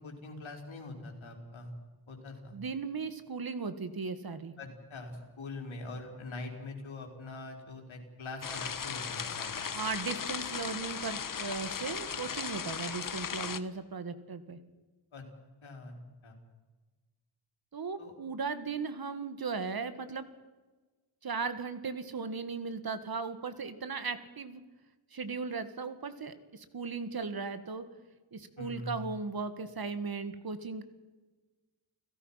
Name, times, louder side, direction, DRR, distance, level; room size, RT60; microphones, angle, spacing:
voice 1, 0.0-1.7 2.1-2.6 4.6-9.6 15.1-15.2 15.6-16.0 16.2-16.4 18.0-18.1 28.6-29.1, left 2 dB, 90° left, 2 dB, 4.8 m, -43 dB
voice 2, 2.5-4.5 9.7-14.6 17.7-20.3 21.2-24.6 25.1-27.8 28.3-30.8, right 4 dB, 50° right, 11 dB, 1.9 m, -37 dB
sound 1, 8.4-13.6, left 6 dB, 45° left, 1.1 m, -37 dB
30.0 x 17.0 x 5.8 m, 1.3 s
wide cardioid pair, 145°, 46 cm